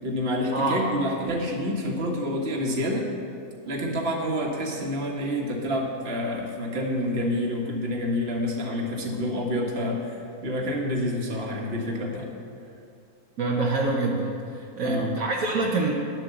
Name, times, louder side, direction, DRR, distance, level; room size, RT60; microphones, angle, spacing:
voice 1, 0.0-3.1 3.7-12.3 14.8-15.1, equal, 45° right, 0 dB, 1.6 m, -28 dB
voice 2, 0.5-0.8 13.4-15.9, right 3 dB, 65° right, -2 dB, 1.4 m, -26 dB
10.0 x 7.8 x 6.9 m, 2.5 s
omnidirectional pair, 1.6 m